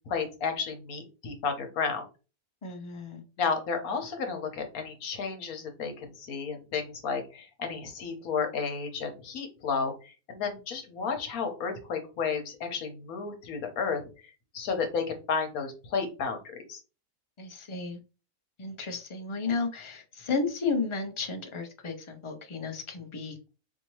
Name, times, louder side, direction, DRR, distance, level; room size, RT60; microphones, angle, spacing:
voice 1, 0.1-2.0 3.4-16.8, left 5 dB, 80° left, 5 dB, 1.4 m, -32 dB
voice 2, 2.6-3.2 17.4-18.0 18.6-23.4, left 4 dB, 40° left, 5 dB, 0.4 m, -33 dB
4.3 x 2.7 x 3.0 m, 0.33 s
omnidirectional pair, 1.5 m